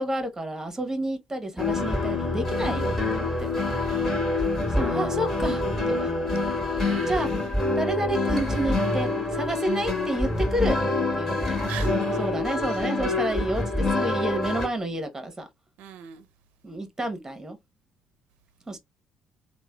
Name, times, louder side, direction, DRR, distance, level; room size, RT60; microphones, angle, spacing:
voice 1, 0.0-3.5 4.7-6.4 7.1-7.3 7.8-10.8 11.2-11.6 12.2-15.5 16.6-17.6 18.7-18.8, right 1 dB, 20° right, 0.9 m, -30 dB
sound 1, 1.6-14.7, left 2 dB, 15° left, 1.5 m, -26 dB
voice 2, 3.8-4.2 6.8-7.1 11.6-12.3 15.8-16.2, right 9 dB, 75° right, 0.4 m, -40 dB
3.1 x 2.1 x 2.2 m
hypercardioid pair, 60°, 3 cm